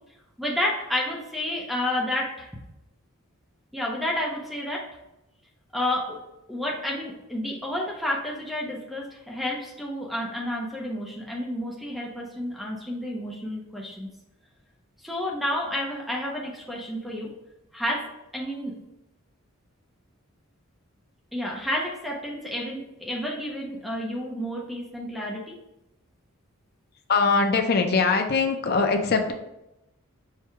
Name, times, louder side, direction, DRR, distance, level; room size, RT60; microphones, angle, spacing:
voice 1, 0.4-2.5 3.7-4.8 5.7-6.2 6.5-14.1 15.0-17.3 17.7-18.7 21.3-25.6, left 1 dB, ahead, -2 dB, 0.6 m, -30 dB
voice 2, 27.1-29.3, left 4 dB, 45° left, 6 dB, 0.5 m, -22 dB
4.4 x 2.3 x 4.7 m, 0.90 s
head